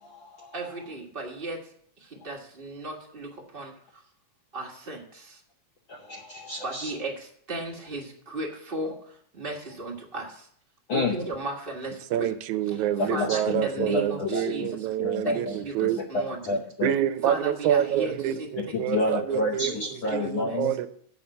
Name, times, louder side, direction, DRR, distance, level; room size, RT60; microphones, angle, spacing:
voice 1, 0.0-0.5 5.9-6.9 10.9-11.1 13.0-14.4 15.0-15.6 15.8-16.9 18.7-20.7, left 2 dB, 65° left, 1.2 m, -29 dB
voice 2, 0.5-1.7 2.0-4.0 4.5-5.4 6.6-10.5 10.9-12.3 13.0-14.9 15.2-16.6 17.2-18.1 18.4-19.0 19.3-19.4 19.7-20.6, right 2 dB, 25° right, 1.2 m, -36 dB
voice 3, 12.1-16.0 16.8-20.9, right 11 dB, 85° right, 2.0 m, -27 dB
7.8 x 5.8 x 7.6 m
omnidirectional pair, 3.3 m